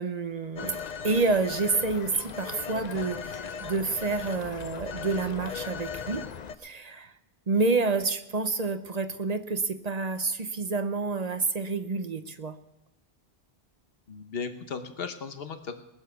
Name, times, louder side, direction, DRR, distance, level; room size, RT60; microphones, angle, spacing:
voice 1, 0.0-6.2 6.6-7.1 7.5-12.6, right 3 dB, 45° right, 10 dB, 0.8 m, -28 dB
Telephone, 0.6-6.6, left 6 dB, 50° left, 0.7 m, -38 dB
voice 2, 14.1-15.8, left 5 dB, 70° left, 8 dB, 1.3 m, -36 dB
20.0 x 7.2 x 6.8 m, 0.94 s
omnidirectional pair, 1.0 m